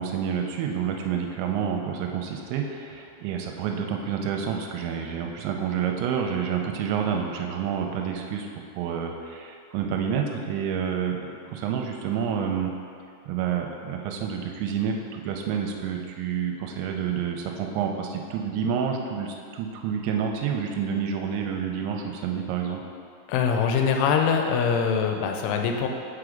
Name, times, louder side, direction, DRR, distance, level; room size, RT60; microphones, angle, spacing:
voice 1, 0.0-8.5 8.8-12.7 13.3-22.8, right 7 dB, 85° right, 2 dB, 2.8 m, -29 dB
voice 2, 23.3-25.9, left 6 dB, 90° left, 3 dB, 3.1 m, -23 dB
6.2 x 4.9 x 5.0 m, 2.4 s
omnidirectional pair, 5.3 m